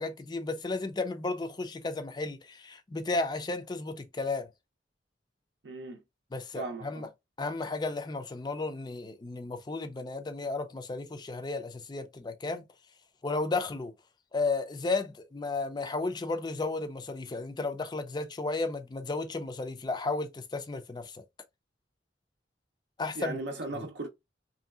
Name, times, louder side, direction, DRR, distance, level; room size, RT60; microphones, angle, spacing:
voice 1, 0.0-4.5 6.3-7.1 7.4-12.7 13.2-13.9 14.3-21.2 23.0-23.4 23.8-23.9, left 3 dB, 25° left, 0.4 m, -33 dB
voice 2, 5.6-6.0 6.6-7.1 23.1-24.1, right 2 dB, 65° right, 0.5 m, -37 dB
3.0 x 2.6 x 2.3 m
head